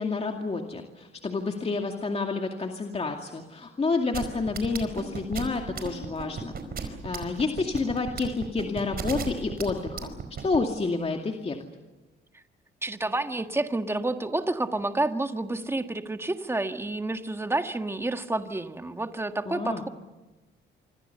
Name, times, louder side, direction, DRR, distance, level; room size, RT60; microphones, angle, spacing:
voice 1, 0.0-10.1 10.4-11.6 19.5-19.8, left 3 dB, 30° left, 3 dB, 2.4 m, -29 dB
sound 1, 4.1-10.6, right 6 dB, 50° right, 4.8 m, -34 dB
voice 2, 12.8-19.9, right 2 dB, 10° right, 7 dB, 1.7 m, -29 dB
26.0 x 25.0 x 6.9 m, 1.1 s
cardioid pair, 90°, 20 cm